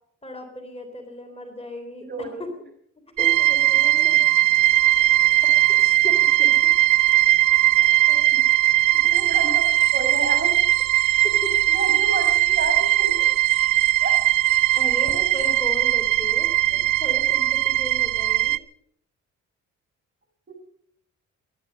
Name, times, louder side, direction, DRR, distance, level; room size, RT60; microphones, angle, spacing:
voice 1, 0.2-2.3 3.2-4.2 5.4-6.7 7.7-7.8 8.3-8.4 11.4-11.5 14.8-18.6, left 1 dB, 20° left, 4 dB, 3.5 m, -36 dB
voice 2, 2.0-2.4 7.8-8.2 9.0-10.5 11.7-13.3 14.0-14.1 14.6-14.7 15.1-15.2, right 3 dB, 35° right, 5 dB, 6.2 m, -31 dB
sound 1, 3.2-18.6, right 14 dB, 85° right, 0.7 m, -19 dB
sound 2, 9.1-15.6, right 7 dB, 70° right, 3.1 m, -41 dB
18.0 x 12.0 x 6.4 m, 0.66 s
cardioid pair, 90°, 30 cm